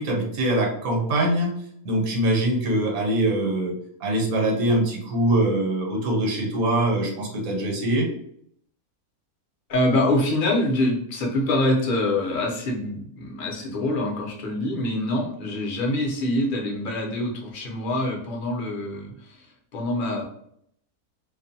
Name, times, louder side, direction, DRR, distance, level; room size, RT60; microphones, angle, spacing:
voice 1, 0.0-1.5 1.8-3.7 4.0-8.1, right 1 dB, 75° right, 0 dB, 1.1 m, -23 dB
voice 2, 9.7-19.5 19.7-20.2, left 1 dB, 50° left, -1 dB, 0.6 m, -25 dB
2.5 x 2.2 x 2.6 m, 0.68 s
omnidirectional pair, 1.5 m